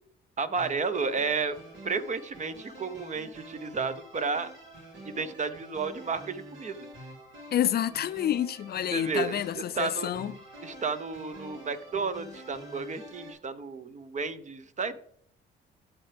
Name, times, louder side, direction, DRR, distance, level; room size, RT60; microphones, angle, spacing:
voice 1, 0.4-1.6 1.8-4.5 5.0-6.9 8.9-9.4 9.8-10.1 10.6-15.0, right 4 dB, 35° right, 0.8 m, -32 dB
sound 1, 0.5-13.3, right 1 dB, 70° right, 3.8 m, -47 dB
voice 2, 7.5-10.4, left 10 dB, 55° left, 0.4 m, -28 dB
13.5 x 4.5 x 3.4 m
cardioid pair, 90°, 20 cm